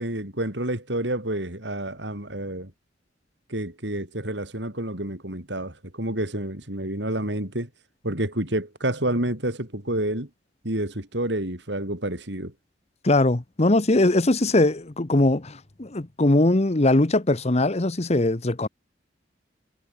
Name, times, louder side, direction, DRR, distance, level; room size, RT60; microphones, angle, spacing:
voice 1, 0.0-2.7 3.5-7.7 8.0-10.3 10.6-12.5, right 1 dB, 70° right, 5.5 m, -29 dB
voice 2, 13.0-18.7, left 2 dB, 35° left, 1.1 m, -21 dB
head